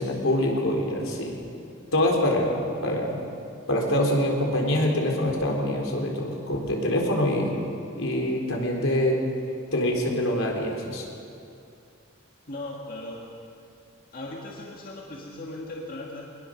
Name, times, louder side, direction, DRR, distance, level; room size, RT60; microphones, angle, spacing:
voice 1, 0.0-1.3 1.9-3.2 3.7-7.5 8.0-9.2 9.7-11.1, left 1 dB, 80° left, 0 dB, 4.2 m, -25 dB
voice 2, 12.5-13.3 14.1-16.2, left 2 dB, 45° left, -2 dB, 2.1 m, -37 dB
22.5 x 20.5 x 6.6 m, 2.5 s
head